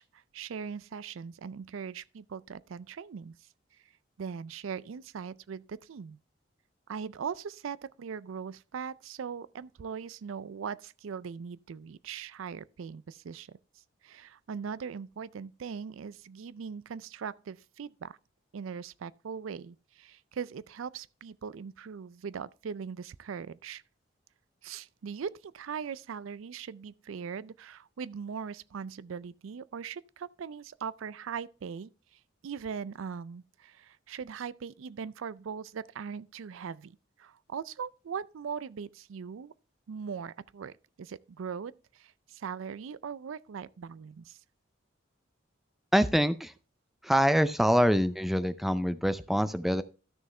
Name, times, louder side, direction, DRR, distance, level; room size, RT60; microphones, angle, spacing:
voice 1, 0.0-3.8 4.2-6.2 6.9-13.6 14.0-18.2 18.5-23.8 24.6-39.5 39.9-44.4, right 6 dB, 85° right, 0.4 m, -40 dB
voice 2, 45.9-46.5 47.0-49.8, equal, ahead, 0.4 m, -25 dB
13.0 x 6.4 x 3.2 m
head